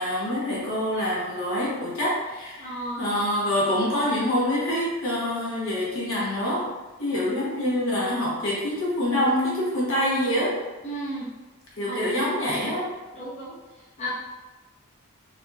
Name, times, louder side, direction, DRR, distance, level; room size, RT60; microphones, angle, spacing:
voice 1, 0.0-6.7 7.0-10.6 11.8-12.9, left 1 dB, 70° left, -6 dB, 1.1 m, -26 dB
voice 2, 2.6-3.1 10.8-11.3 11.9-12.1 13.1-14.1, equal, 35° left, -9 dB, 0.7 m, -34 dB
3.4 x 2.7 x 2.3 m, 1.2 s
head